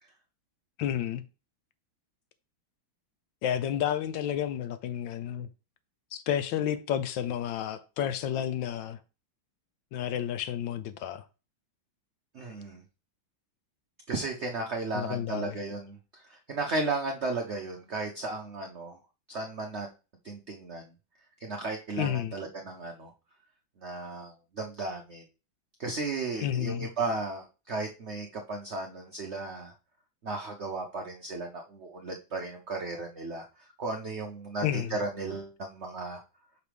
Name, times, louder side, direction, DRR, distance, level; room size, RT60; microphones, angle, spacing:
voice 1, 0.8-1.2 3.4-5.5 6.1-9.0 9.9-11.2 14.9-15.6 22.0-22.3 26.4-26.9 34.6-35.0, left 10 dB, 75° left, 1.2 m, -31 dB
voice 2, 12.3-12.8 14.1-16.0 16.3-19.0 19.3-19.9 20.2-20.9 21.4-23.1 23.8-25.2 25.8-29.7 30.2-33.4 33.8-36.2, right 3 dB, 75° right, 0.6 m, -35 dB
6.0 x 5.5 x 3.4 m
omnidirectional pair, 2.2 m